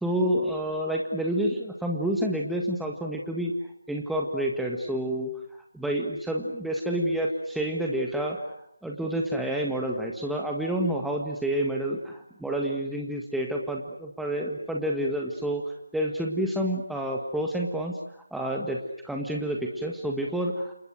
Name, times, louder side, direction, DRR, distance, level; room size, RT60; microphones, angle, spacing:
voice 1, 0.0-3.5 3.9-5.3 5.7-8.5 8.8-20.7, right 1 dB, ahead, -1 dB, 1.7 m, -29 dB
29.5 x 28.5 x 6.5 m, 0.78 s
figure-of-eight pair, 160°, 0 cm